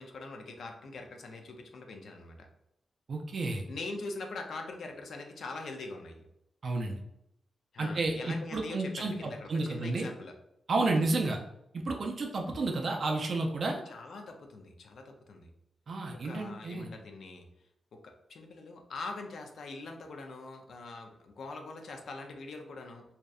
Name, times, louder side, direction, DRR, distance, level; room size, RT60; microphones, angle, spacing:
voice 1, 0.0-2.5 3.7-6.3 7.7-10.3 10.8-11.0 13.9-15.5 16.1-17.4 17.9-23.0, left 3 dB, 70° left, 4 dB, 0.4 m, -43 dB
voice 2, 3.1-3.6 6.6-7.0 7.8-10.1 10.7-11.4 11.8-13.8 15.9-16.9, right 2 dB, 50° right, 1 dB, 0.3 m, -31 dB
2.7 x 2.1 x 2.3 m, 0.81 s
wide cardioid pair, 130°, 0 cm